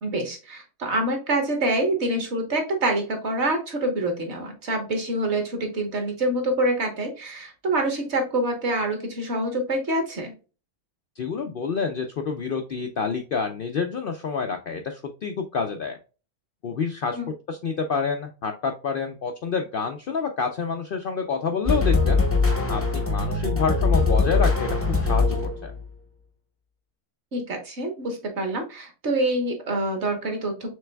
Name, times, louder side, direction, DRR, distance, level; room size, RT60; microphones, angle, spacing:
voice 1, 0.0-10.3 17.1-17.3 27.3-30.7, right 1 dB, 50° right, 4 dB, 1.3 m, -26 dB
voice 2, 11.2-16.0 16.6-17.2 17.5-22.2 22.7-25.7, left 5 dB, 90° left, 5 dB, 0.4 m, -28 dB
sound 1, 21.6-25.8, left 4 dB, 15° left, 0.5 m, -22 dB
6.2 x 3.3 x 2.2 m, 0.34 s
omnidirectional pair, 1.6 m